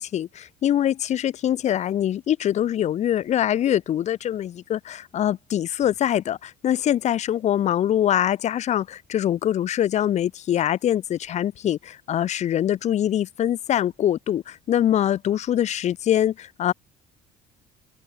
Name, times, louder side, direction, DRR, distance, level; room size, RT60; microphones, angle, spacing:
voice 1, 0.0-16.7, left 11 dB, 45° left, 0.4 m, -23 dB
cardioid pair, 110°, 17 cm